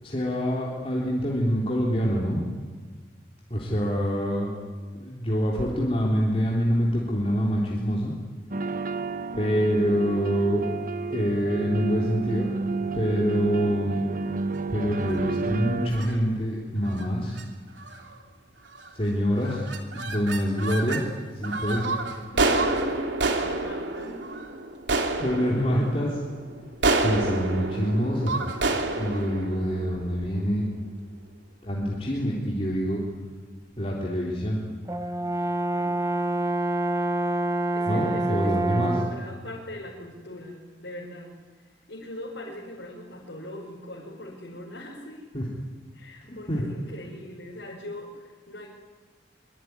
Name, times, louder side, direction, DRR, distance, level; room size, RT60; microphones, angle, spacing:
voice 1, 0.0-2.4 3.5-4.6 4.9-8.1 9.3-10.7 11.1-12.5 12.9-14.1 14.7-17.4 19.0-19.7 19.9-21.9 25.2-26.2 27.0-28.4 29.0-30.7 31.6-33.0 33.8-34.6 37.9-38.9 45.3-45.4 46.2-46.6, equal, 35° left, -3 dB, 3.8 m, -26 dB
sound 1, 8.5-15.9, right 3 dB, 50° right, 1.1 m, -31 dB
sound 2, 15.0-15.4 15.9-16.2 16.8-17.1 17.4-17.5 17.8-18.2 18.7-19.1 19.4-21.0 21.4-30.6, right 2 dB, 85° right, 3.0 m, -29 dB
voice 2, 22.1-24.2 35.7-36.4 37.7-41.3 41.9-45.2 45.9-48.7, left 1 dB, 80° left, -4 dB, 5.1 m, -40 dB
Brass instrument, 34.9-39.3, right 2 dB, 20° right, 1.6 m, -27 dB
24.5 x 24.0 x 9.7 m, 1.5 s
head